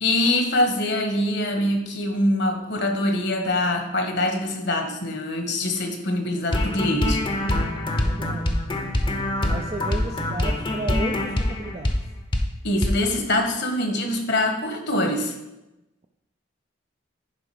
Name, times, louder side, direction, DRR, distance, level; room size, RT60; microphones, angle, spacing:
voice 1, 0.0-7.2 12.6-15.3, left 1 dB, 60° left, 4 dB, 1.4 m, -24 dB
sound 1, 6.5-12.0 12.3-12.5 12.8-13.0, left 1 dB, 25° left, 0.8 m, -24 dB
voice 2, 8.0-8.5 9.5-12.0, right 2 dB, 30° right, 3 dB, 0.4 m, -34 dB
10.5 x 4.8 x 4.9 m, 0.95 s
head